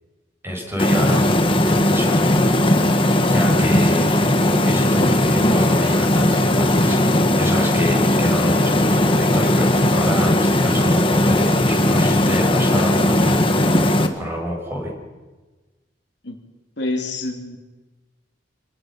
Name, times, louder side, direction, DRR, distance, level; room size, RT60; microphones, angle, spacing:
voice 1, 0.4-2.2 3.2-14.9, equal, 15° right, 0 dB, 6.8 m, -28 dB
sound 1, 0.8-14.1, left 1 dB, 30° left, 1.8 m, -17 dB
voice 2, 16.8-17.6, left 2 dB, 65° left, 1 dB, 3.2 m, -27 dB
29.0 x 20.0 x 6.1 m, 1.2 s
head